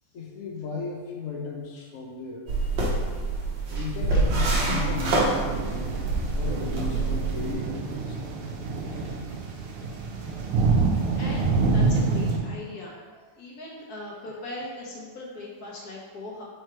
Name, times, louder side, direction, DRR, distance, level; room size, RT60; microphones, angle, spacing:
voice 1, 0.1-2.5 3.7-6.0 6.3-8.2 8.9-9.1, left 4 dB, 65° left, -1 dB, 0.8 m, -35 dB
sound 1, 2.5-7.5, right 2 dB, 60° right, 1.7 m, -26 dB
sound 2, 4.3-12.4, right 4 dB, 85° right, 1.7 m, -27 dB
voice 2, 11.2-16.4, left 2 dB, 50° left, -3 dB, 1.6 m, -40 dB
4.7 x 4.5 x 4.7 m, 1.5 s
omnidirectional pair, 2.4 m